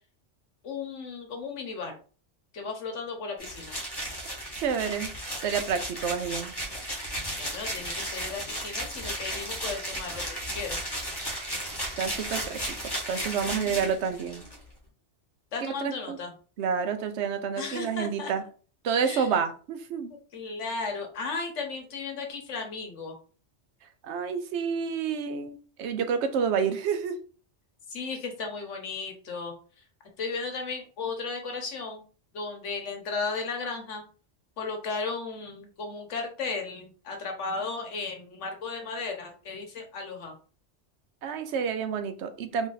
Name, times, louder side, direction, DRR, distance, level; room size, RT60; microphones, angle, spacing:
voice 1, 0.6-2.0 2.5-3.8 7.4-10.8 13.5-14.0 15.5-16.3 17.6-18.3 19.0-19.4 20.1-23.1 27.9-29.5 30.2-32.0 32.3-34.0 34.6-40.3, left 4 dB, 85° left, 3 dB, 1.3 m, -35 dB
sound 1, 3.4-14.6, right 1 dB, 20° left, 1.1 m, -35 dB
voice 2, 4.5-5.1 5.4-6.5 12.0-14.4 15.6-16.2 16.6-18.4 18.8-20.1 24.0-27.1 41.2-42.7, right 6 dB, 75° right, 8 dB, 0.9 m, -29 dB
3.0 x 2.6 x 3.9 m, 0.38 s
omnidirectional pair, 1.2 m